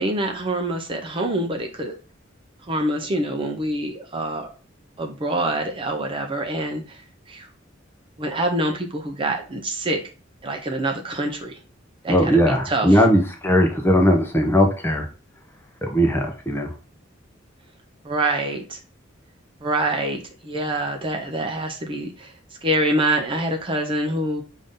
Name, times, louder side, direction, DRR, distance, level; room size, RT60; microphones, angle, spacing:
voice 1, 0.0-1.9 2.7-4.5 5.0-7.0 7.3-7.5 8.2-10.0 10.4-11.6 12.0-13.0 18.0-18.8 19.6-22.3 22.6-24.4, right 1 dB, 25° right, 3 dB, 0.6 m, -25 dB
voice 2, 12.1-15.0 15.8-16.7, equal, 10° left, 2 dB, 0.7 m, -18 dB
5.3 x 2.7 x 3.6 m, 0.36 s
head